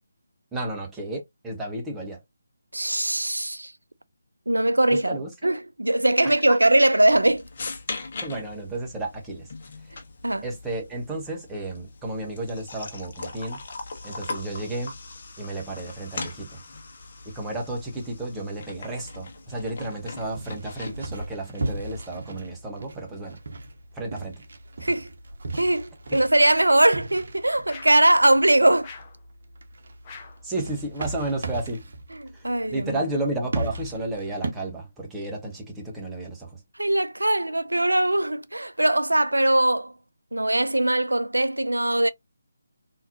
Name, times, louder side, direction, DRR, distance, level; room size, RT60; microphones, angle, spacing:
voice 1, 0.5-2.2 4.9-5.5 6.2-6.6 8.2-9.5 9.8-9.9 10.4-13.6 14.0-14.9 15.4-16.6 17.2-23.4 23.9-24.4 30.4-31.9 32.3-36.6, right 2 dB, 10° right, 1.0 m, -32 dB
voice 2, 2.7-3.7 4.5-5.2 5.4-7.4 10.2-10.4 24.8-25.1 25.5-28.9 32.4-33.0 36.8-39.9 40.3-42.1, right 1 dB, 85° right, 0.5 m, -21 dB
sound 1, 7.1-21.1, left 3 dB, 45° left, 1.2 m, -40 dB
sound 2, 18.9-34.5, right 2 dB, 55° right, 1.0 m, -37 dB
sound 3, 26.4-26.8 27.7-28.1 28.8-29.2 30.0-30.5, left 5 dB, 20° left, 0.8 m, -43 dB
3.8 x 2.9 x 2.7 m
figure-of-eight pair, 155°, 0 cm